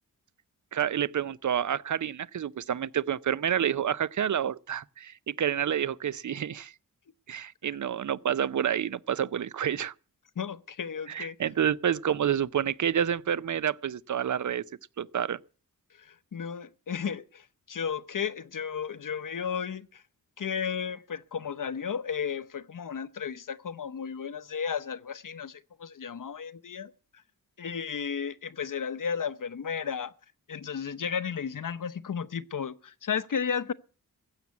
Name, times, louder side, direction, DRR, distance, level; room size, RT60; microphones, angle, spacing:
voice 1, 0.7-6.7 7.3-9.9 11.1-14.6 15.0-15.4, right 9 dB, 55° right, 0.6 m, -29 dB
voice 2, 10.4-11.4 16.0-20.0 20.4-26.9 27.6-30.1 30.5-33.7, left 7 dB, 60° left, 0.8 m, -34 dB
15.5 x 7.4 x 8.2 m
wide cardioid pair, 75°, 35 cm